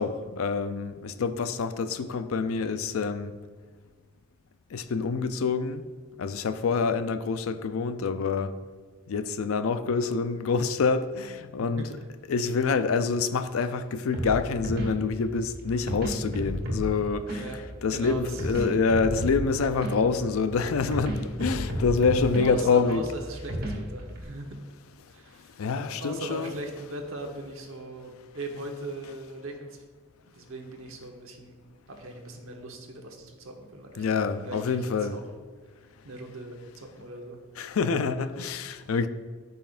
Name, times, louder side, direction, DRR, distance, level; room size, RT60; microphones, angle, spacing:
voice 1, 0.0-3.3 4.7-5.8 6.2-8.5 9.1-11.9 12.3-17.4 17.8-23.1 25.6-26.5 34.0-35.2 37.6-39.1, left 4 dB, 85° left, 0.4 m, -26 dB
voice 2, 11.5-11.9 17.4-17.6 17.9-18.5 22.4-24.5 25.1-25.6 26.0-29.8 30.3-31.6 31.9-34.1 34.4-35.2 36.0-37.4 38.6-38.7, right 1 dB, 80° right, 1.1 m, -39 dB
sound 1, 14.1-24.2, equal, 45° right, 1.6 m, -34 dB
13.0 x 5.6 x 2.5 m
head